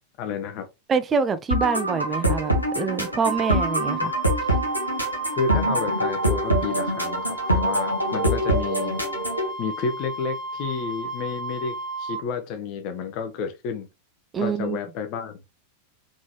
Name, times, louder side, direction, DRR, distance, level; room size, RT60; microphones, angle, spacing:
voice 1, 0.2-0.7 5.4-9.0 9.6-13.9 14.4-15.4, left 5 dB, 45° left, 0.7 m, -30 dB
voice 2, 0.9-4.1 14.3-14.8, right 5 dB, 20° right, 0.4 m, -25 dB
sound 1, 1.5-9.5, right 1 dB, 90° right, 1.2 m, -24 dB
Wind instrument woodwind instrument, 3.2-12.2, right 2 dB, 5° left, 1.8 m, -33 dB
3.9 x 3.7 x 2.9 m
figure-of-eight pair, 90°, 0 cm